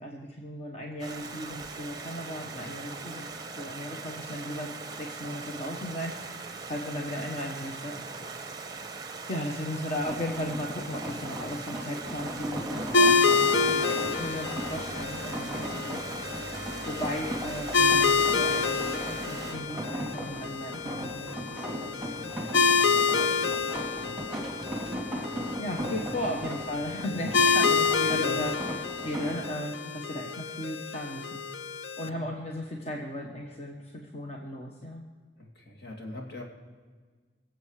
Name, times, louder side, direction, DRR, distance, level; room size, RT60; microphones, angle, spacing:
voice 1, 0.0-7.9 8.4-8.7 9.3-16.0 16.9-18.9 19.3-24.3 25.6-28.6 29.0-31.4 32.0-35.0, left 1 dB, 35° left, 0 dB, 1.2 m, -36 dB
Stream, 1.0-19.5, right 4 dB, 20° right, 0.9 m, -41 dB
sound 1, 10.0-29.5, right 1 dB, 5° right, 3.0 m, -37 dB
sound 2, 12.9-32.1, left 5 dB, 90° left, 0.7 m, -28 dB
voice 2, 27.1-27.6 28.1-28.5 32.1-32.3 35.4-36.4, left 1 dB, 65° left, 0 dB, 2.6 m, -40 dB
22.5 x 7.7 x 4.9 m, 1.5 s
head